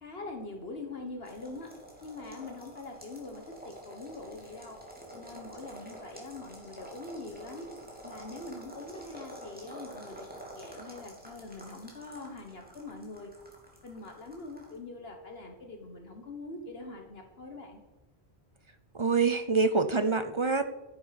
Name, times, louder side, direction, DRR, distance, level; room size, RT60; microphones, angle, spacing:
voice 1, 0.0-1.7 2.0-4.8 5.1-7.7 8.0-10.3 10.5-13.3 13.8-17.8, left 2 dB, 65° left, 3 dB, 1.6 m, -43 dB
sound 1, 1.2-14.8, right 1 dB, 10° right, 3.0 m, -48 dB
voice 2, 18.9-20.6, right 4 dB, 35° right, 9 dB, 0.6 m, -26 dB
12.5 x 9.7 x 5.8 m, 1.1 s
omnidirectional pair, 1.1 m